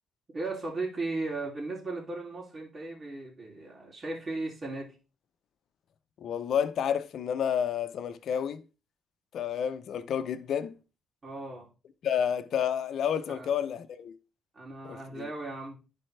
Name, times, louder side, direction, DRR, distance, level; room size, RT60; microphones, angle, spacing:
voice 1, 0.3-4.9 11.2-11.7 13.3-13.5 14.5-15.8, right 2 dB, 35° right, 3.0 m, -36 dB
voice 2, 6.2-8.6 9.3-10.7 12.0-14.1 14.8-15.3, left 8 dB, 65° left, 0.7 m, -30 dB
11.0 x 4.3 x 3.3 m
cardioid pair, 90°, 0 cm